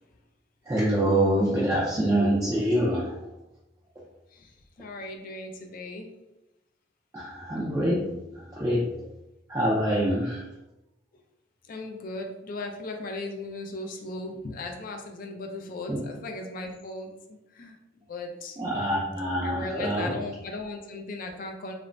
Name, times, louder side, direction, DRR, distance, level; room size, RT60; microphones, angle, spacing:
voice 1, 0.7-3.2 7.1-8.0 8.3-8.9 9.5-10.5 15.9-16.0 18.6-20.1, right 1 dB, 15° right, -7 dB, 0.4 m, -25 dB
voice 2, 4.8-6.1 11.7-17.8 18.1-18.6 19.4-21.7, left 2 dB, 50° left, 3 dB, 0.4 m, -37 dB
2.5 x 2.0 x 3.1 m, 0.94 s
head